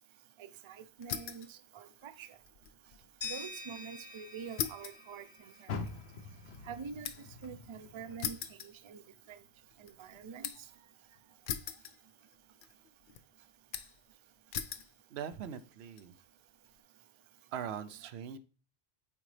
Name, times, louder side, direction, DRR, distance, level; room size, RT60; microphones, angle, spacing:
voice 1, 0.7-2.3 3.3-5.3 5.6-5.7 6.7-7.1 7.4-8.4 8.9-9.0 10.0-10.5, right 6 dB, 45° right, 0.4 m, -45 dB
sound 1, 1.0-1.5 1.9-3.4 3.7-3.8 4.6-7.4 8.2-9.3 9.7-10.7 11.5-12.4 12.6-13.2 13.7-14.1 14.5-14.9 15.6-16.0, left 8 dB, 60° left, 0.6 m, -41 dB
sound 2, 3.2-6.1, left 3 dB, 30° left, 0.9 m, -46 dB
Car, 5.6-8.9 9.3-10.7 11.1-11.2 11.8-11.9, left 4 dB, 80° left, 1.1 m, -45 dB
voice 2, 15.1-16.1 17.5-18.4, right 8 dB, 85° right, 0.9 m, -41 dB
8.8 x 3.9 x 3.2 m
omnidirectional pair, 1.1 m